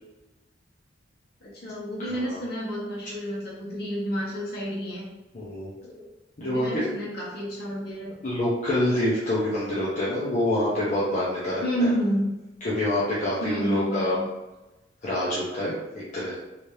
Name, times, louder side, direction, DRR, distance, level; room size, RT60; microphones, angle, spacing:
voice 1, 1.4-5.1 5.8-6.0 6.4-8.1 9.6-9.7 11.6-12.3 13.4-14.3, equal, 55° left, -5 dB, 1.3 m, -30 dB
voice 2, 2.1-2.4 5.3-5.7 6.4-7.0 8.2-11.9 12.6-14.2 15.0-16.3, left 1 dB, 40° left, -9 dB, 0.8 m, -26 dB
3.3 x 3.1 x 2.7 m, 1.1 s
head